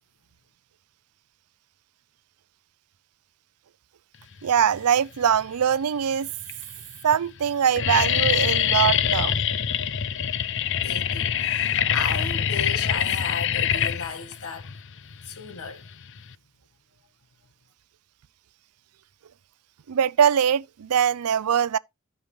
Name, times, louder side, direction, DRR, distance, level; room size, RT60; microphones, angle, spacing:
voice 1, 4.4-6.3 7.0-9.3 19.9-21.8, right 8 dB, 85° right, 0.5 m, -22 dB
sound 1, 5.2-5.7 6.4-6.5 6.8-7.2 7.4-16.3, left 9 dB, 55° left, 0.6 m, -25 dB
voice 2, 10.7-14.7 15.2-15.9, left 5 dB, 80° left, 1.7 m, -35 dB
14.0 x 5.5 x 3.3 m
head